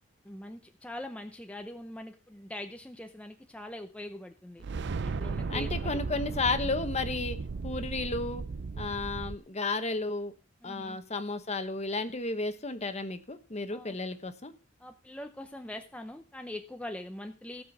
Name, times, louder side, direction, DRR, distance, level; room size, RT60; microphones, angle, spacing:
voice 1, 0.2-4.6 5.0-6.0 8.7-8.8 10.6-11.0 13.7-14.0 14.8-17.6, left 1 dB, 5° left, 5 dB, 0.7 m, -42 dB
sound 1, 4.6-9.4, right 4 dB, 60° right, 0.5 m, -35 dB
voice 2, 5.5-7.4 7.6-8.4 8.8-10.3 10.6-14.5, left 3 dB, 35° left, 10 dB, 1.2 m, -33 dB
16.5 x 6.1 x 6.0 m, 0.37 s
head